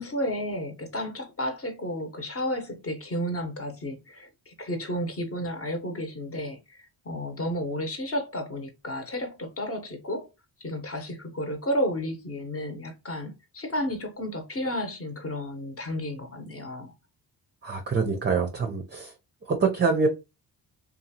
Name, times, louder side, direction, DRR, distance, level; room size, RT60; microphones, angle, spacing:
voice 1, 0.0-10.3 10.6-16.9, equal, 30° left, 0.9 m, -32 dB
voice 2, 17.6-19.1 19.5-20.1, right 4 dB, 25° right, 0.5 m, -25 dB
2.7 x 2.4 x 2.7 m
cardioid pair, 75°, 43 cm